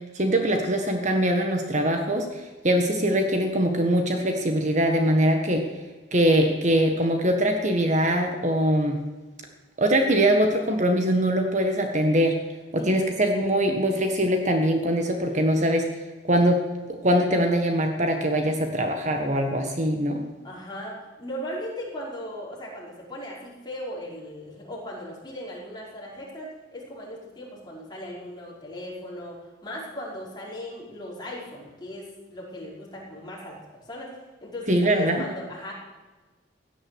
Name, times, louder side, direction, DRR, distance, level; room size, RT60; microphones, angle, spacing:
voice 1, 0.1-5.7 6.1-9.0 9.8-12.4 12.7-15.9 16.2-16.6 17.0-20.2 34.7-35.2, right 1 dB, 40° right, 4 dB, 1.6 m, -22 dB
voice 2, 20.4-33.6 33.9-35.7, equal, 25° left, -5 dB, 5.2 m, -38 dB
17.0 x 10.5 x 8.0 m, 1.3 s
head